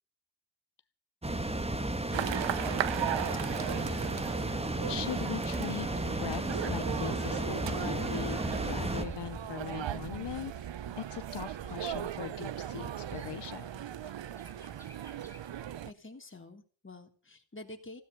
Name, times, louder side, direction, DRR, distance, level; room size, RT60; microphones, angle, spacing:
sound 1, 1.2-9.0, right 1 dB, 15° right, 1.8 m, -33 dB
sound 2, 2.1-15.9, right 10 dB, 70° right, 0.9 m, -37 dB
Bird, 4.5-15.5, left 1 dB, 5° left, 3.2 m, -52 dB
voice 1, 4.9-13.8, left 10 dB, 60° left, 14 dB, 0.7 m, -41 dB
voice 2, 15.9-18.0, left 2 dB, 25° left, 4 dB, 3.4 m, -48 dB
16.0 x 12.5 x 7.0 m, 0.41 s
wide cardioid pair, 90°, 46 cm